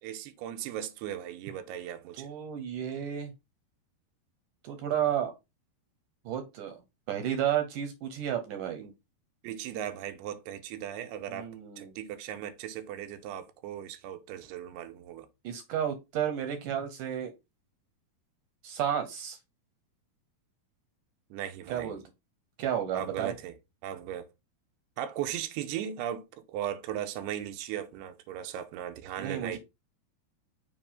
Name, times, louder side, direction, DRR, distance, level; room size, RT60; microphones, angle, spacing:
voice 1, 0.0-2.3 8.8-8.9 9.4-11.5 11.8-15.3 21.3-22.0 22.9-23.5 23.8-24.3 25.0-29.6, right 10 dB, 90° right, 2.8 m, -37 dB
voice 2, 2.2-3.3 4.6-5.3 6.3-6.8 7.1-8.9 11.3-11.9 15.4-17.3 18.6-19.4 21.7-22.0 22.6-23.3 29.2-29.6, right 9 dB, 75° right, 2.0 m, -32 dB
6.7 x 2.6 x 5.6 m
omnidirectional pair, 4.6 m